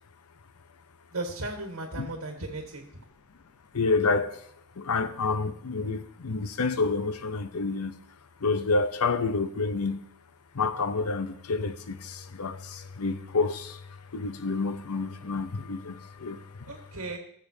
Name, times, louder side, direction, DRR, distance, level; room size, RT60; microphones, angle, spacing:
voice 1, 1.1-2.8 16.7-17.2, right 2 dB, 70° right, 1.5 m, -35 dB
voice 2, 3.7-7.9 8.4-10.1 10.5-16.7, left 4 dB, 85° left, 0.7 m, -29 dB
17.5 x 7.5 x 2.8 m
head